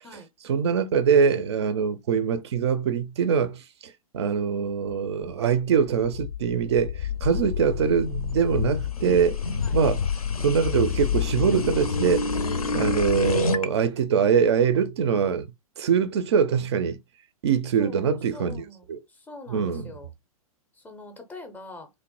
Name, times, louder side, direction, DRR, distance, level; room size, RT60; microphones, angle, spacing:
voice 1, 0.4-9.4 9.7-10.0 10.4-12.3 12.7-15.5 15.8-17.0 17.4-19.0 19.5-19.9, right 7 dB, 45° right, 0.4 m, -23 dB
sound 1, 5.9-13.7, left 5 dB, 75° left, 0.5 m, -28 dB
voice 2, 17.8-20.1 20.7-21.9, left 2 dB, 10° left, 0.5 m, -44 dB
3.0 x 2.0 x 2.8 m
figure-of-eight pair, 110°, 19 cm